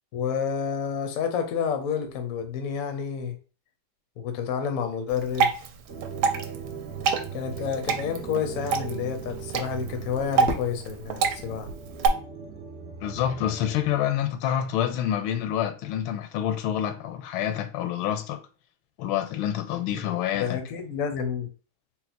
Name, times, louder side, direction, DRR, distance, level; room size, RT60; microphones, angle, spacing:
voice 1, 0.1-3.4 4.2-5.5 7.3-11.7 20.4-21.5, left 7 dB, 65° left, 0.8 m, -29 dB
Water / Drip, 5.1-12.1, right 6 dB, 75° right, 1.3 m, -28 dB
sound 1, 5.9-14.0, right 7 dB, 60° right, 0.7 m, -39 dB
Fireworks, 10.4-12.6, equal, 10° left, 0.4 m, -37 dB
voice 2, 13.0-18.4 19.0-20.6, left 10 dB, 80° left, 1.4 m, -27 dB
4.1 x 2.1 x 4.1 m
omnidirectional pair, 2.2 m